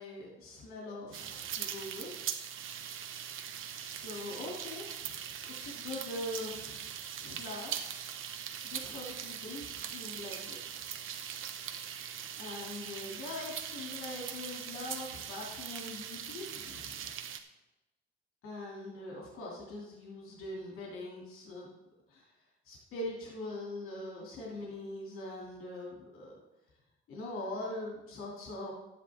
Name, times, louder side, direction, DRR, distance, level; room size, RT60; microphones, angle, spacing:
voice 1, 0.0-2.2 3.8-5.2 5.4-6.8 7.2-7.7 8.6-10.7 12.4-17.1 18.4-21.7 22.1-22.3 22.7-26.4 27.1-28.7, left 2 dB, 85° left, -3 dB, 2.6 m, -42 dB
sound 1, 1.1-17.4, right 9 dB, 70° right, 0.9 m, -41 dB
12.0 x 9.7 x 3.6 m, 1.0 s
cardioid pair, 115°, 21 cm